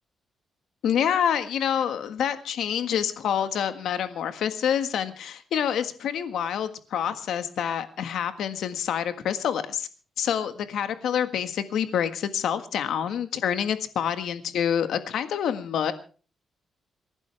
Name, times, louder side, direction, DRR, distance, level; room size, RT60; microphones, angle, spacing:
voice 1, 0.8-9.9 10.2-15.9, left 8 dB, 80° left, 9 dB, 1.6 m, -27 dB
28.5 x 11.5 x 3.4 m, 0.38 s
cardioid pair, 125°, 0 cm